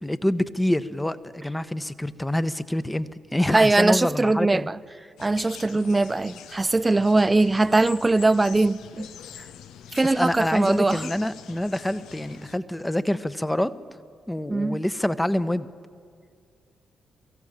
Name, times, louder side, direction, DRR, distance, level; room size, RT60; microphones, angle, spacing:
voice 1, 0.0-4.7 10.0-13.7 14.3-15.7, left 1 dB, 10° left, 1.0 m, -26 dB
voice 2, 3.5-4.8 5.2-9.1 9.9-11.1 14.5-14.8, right 2 dB, 25° right, 0.6 m, -21 dB
sound 1, 5.2-12.6, left 9 dB, 75° left, 0.7 m, -44 dB
23.0 x 15.5 x 8.9 m
hypercardioid pair, 45°, 0 cm